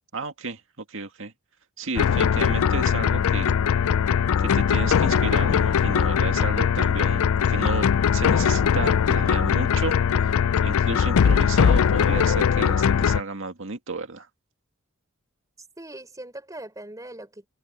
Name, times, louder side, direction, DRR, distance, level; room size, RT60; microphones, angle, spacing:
voice 1, 0.1-0.6 0.9-1.3 1.8-3.5 4.4-10.0 10.2-10.3 10.6-14.3, right 3 dB, 60° right, 2.2 m, -32 dB
sound 1, 2.0-13.2, left 7 dB, 80° left, 0.4 m, -21 dB
voice 2, 15.6-17.5, right 1 dB, 15° right, 4.9 m, -40 dB
head